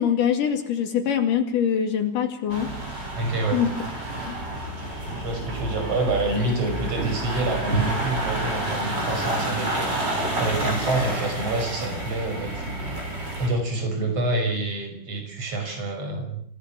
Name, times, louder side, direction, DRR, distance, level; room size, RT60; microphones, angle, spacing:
voice 1, 0.0-2.7 3.5-3.7 4.2-4.4, left 8 dB, 80° left, 5 dB, 3.8 m, -23 dB
sound 1, 2.5-13.5, right 2 dB, 30° right, 8.4 m, -29 dB
voice 2, 3.2-3.6 5.2-10.0 10.4-13.0 13.4-16.4, right 2 dB, 50° right, 5 dB, 6.8 m, -27 dB
28.5 x 17.5 x 7.5 m, 0.66 s
omnidirectional pair, 3.7 m